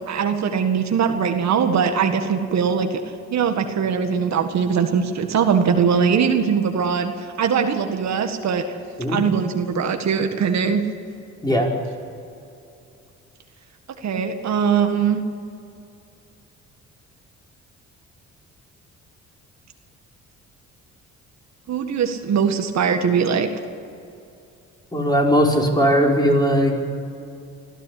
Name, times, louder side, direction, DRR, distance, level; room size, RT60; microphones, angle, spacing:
voice 1, 0.1-3.0 3.3-8.8 9.1-10.8 14.0-15.2 21.7-23.5, right 6 dB, 65° right, 5 dB, 1.8 m, -21 dB
voice 2, 24.9-26.8, equal, 15° left, -1 dB, 5.0 m, -18 dB
24.5 x 14.5 x 8.6 m, 2.6 s
cardioid pair, 90°, 30 cm